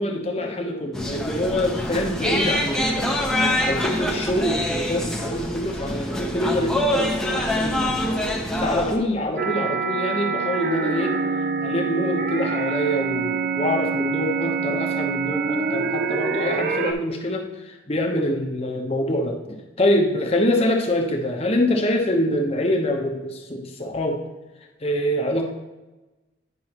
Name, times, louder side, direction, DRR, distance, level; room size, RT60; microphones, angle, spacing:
voice 1, 0.0-3.3 3.6-8.0 8.6-11.2 11.6-24.2 24.8-25.5, left 1 dB, 35° left, 2 dB, 0.9 m, -25 dB
sound 1, 0.9-9.0, left 1 dB, 5° left, 0.7 m, -25 dB
sound 2, 9.4-16.9, right 5 dB, 50° right, 0.5 m, -25 dB
9.6 x 5.4 x 2.9 m, 1.1 s
head